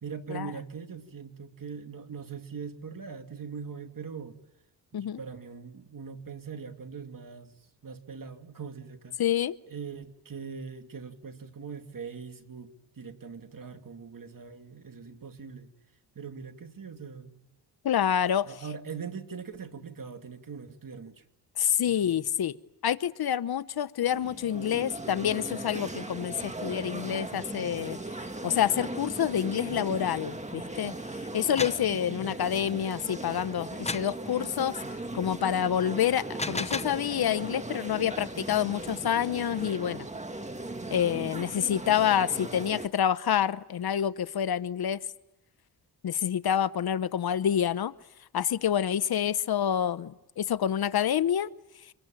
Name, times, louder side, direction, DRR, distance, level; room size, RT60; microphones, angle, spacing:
voice 1, 0.0-4.4 4.9-9.2 9.7-15.7 16.1-17.4 18.4-21.2 21.9-22.2 32.1-32.3, right 6 dB, 50° right, 2.5 m, -41 dB
voice 2, 9.2-9.5 17.8-18.5 21.6-22.6 22.8-28.0 28.4-30.9 31.3-34.8 35.1-40.1 40.9-45.0 46.0-47.9 48.3-51.5, left 9 dB, 65° left, 0.9 m, -27 dB
sound 1, 24.0-42.9, right 2 dB, 15° right, 1.8 m, -38 dB
sound 2, 31.3-31.9 33.9-34.2 36.2-37.0, left 3 dB, 15° left, 0.9 m, -33 dB
26.0 x 22.0 x 9.1 m
cardioid pair, 70°, 41 cm